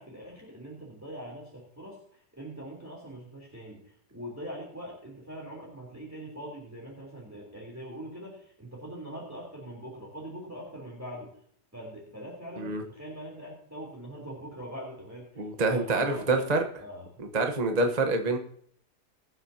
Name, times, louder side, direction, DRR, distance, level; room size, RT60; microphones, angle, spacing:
voice 1, 0.0-11.3 11.7-16.5 16.8-17.1, equal, 10° right, -3 dB, 3.3 m, -42 dB
voice 2, 15.4-16.6 17.3-18.4, right 3 dB, 30° right, 4 dB, 1.1 m, -26 dB
22.5 x 7.7 x 2.8 m, 0.62 s
omnidirectional pair, 1.7 m